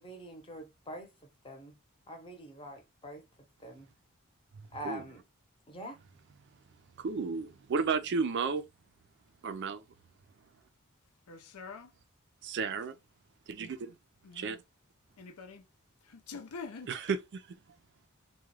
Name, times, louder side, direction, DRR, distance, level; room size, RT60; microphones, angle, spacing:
voice 1, 0.0-1.7 2.1-3.2 3.6-3.9 4.7-5.2 5.7-6.0, equal, 25° left, 0.8 m, -45 dB
voice 2, 7.0-8.6 9.4-9.8 12.5-13.0 13.5-14.0 14.3-14.6 16.9-17.4, right 5 dB, 55° right, 0.4 m, -32 dB
voice 3, 11.3-11.9 14.2-14.6 15.2-15.6 16.0-16.9, left 4 dB, 85° left, 0.6 m, -45 dB
2.3 x 2.2 x 3.1 m
head